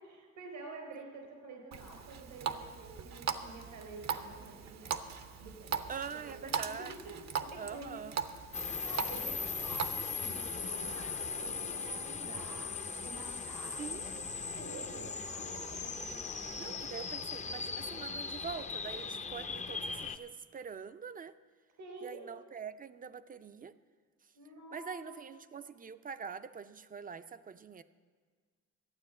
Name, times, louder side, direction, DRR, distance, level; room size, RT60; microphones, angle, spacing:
voice 1, 0.0-8.0 8.8-12.8 13.0-17.0 21.8-22.3 24.3-25.3, right 2 dB, 90° right, 2 dB, 4.0 m, -49 dB
Water tap faucet, 1.7-9.9, right 7 dB, 60° right, 0.8 m, -40 dB
voice 2, 5.9-7.2 7.6-8.2 13.8-14.1 16.6-21.3 22.0-23.7 24.7-27.8, right 6 dB, 30° right, 12 dB, 0.5 m, -44 dB
sound 1, 8.5-20.2, left 4 dB, 25° left, 0.6 m, -39 dB
12.5 x 8.9 x 7.6 m, 1.5 s
cardioid pair, 90°, 30 cm